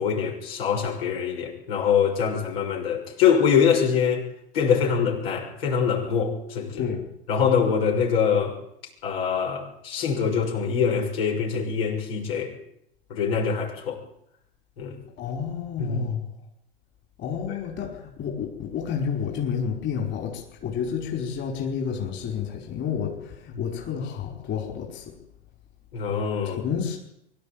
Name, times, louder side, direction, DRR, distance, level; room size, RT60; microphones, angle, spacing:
voice 1, 0.0-4.3 4.5-6.8 7.3-8.6 9.0-12.5 13.1-14.0 14.8-15.0 15.8-16.1 25.9-26.6, left 7 dB, 70° left, 0 dB, 6.4 m, -24 dB
voice 2, 6.8-7.1 15.2-16.3 17.2-25.2 26.4-27.0, left 7 dB, 35° left, 1 dB, 4.9 m, -30 dB
24.0 x 12.0 x 9.0 m, 0.77 s
hypercardioid pair, 100°, 31 cm